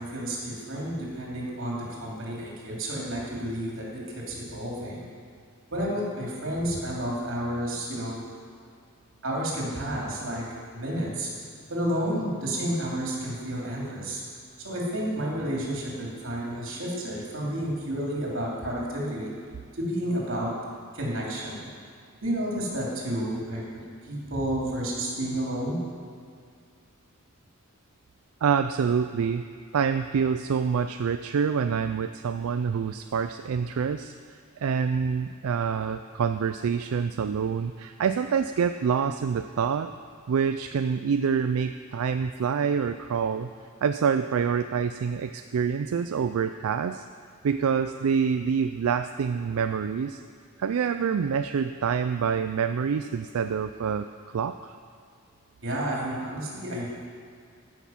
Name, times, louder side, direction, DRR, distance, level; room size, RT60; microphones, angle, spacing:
voice 1, 0.0-5.1 5.7-8.2 9.2-10.4 10.7-11.3 11.7-14.2 14.6-19.3 19.7-20.5 20.9-21.6 22.2-23.6 24.0-25.8 55.6-56.9, right 1 dB, 60° right, -4 dB, 3.0 m, -31 dB
voice 2, 28.4-29.5 29.7-39.9 40.3-43.5 43.8-47.0 47.4-50.2 50.6-54.1 54.3-54.8, right 6 dB, 85° right, 9 dB, 0.4 m, -26 dB
15.0 x 6.4 x 5.8 m, 2.2 s
head